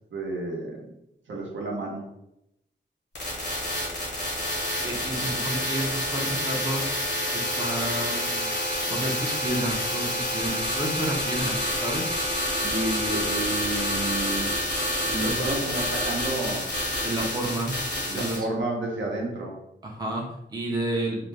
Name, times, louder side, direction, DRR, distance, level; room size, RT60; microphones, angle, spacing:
voice 1, 0.1-0.8 1.3-2.1 12.6-14.5 15.1-16.7 18.1-19.6, right 2 dB, 75° right, -1 dB, 0.7 m, -30 dB
sound 1, 3.1-18.4, left 1 dB, 60° left, 0.9 m, -28 dB
voice 2, 4.8-6.9 7.3-8.5 8.9-12.1 15.2-15.4 17.0-17.8 18.1-18.5 19.8-21.3, right 1 dB, 20° right, -1 dB, 0.5 m, -30 dB
2.4 x 2.0 x 3.2 m, 0.83 s
wide cardioid pair, 115°, 19 cm